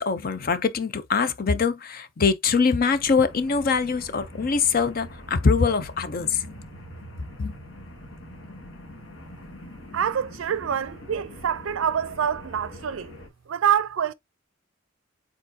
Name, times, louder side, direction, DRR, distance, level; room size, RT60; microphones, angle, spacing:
voice 1, 0.0-6.7 7.4-7.5, left 5 dB, 45° left, 0.5 m, -23 dB
sound 1, 2.9-13.3, equal, 75° left, 1.7 m, -43 dB
voice 2, 9.9-13.1 13.5-14.1, right 8 dB, 80° right, 0.4 m, -26 dB
4.4 x 3.9 x 2.6 m
head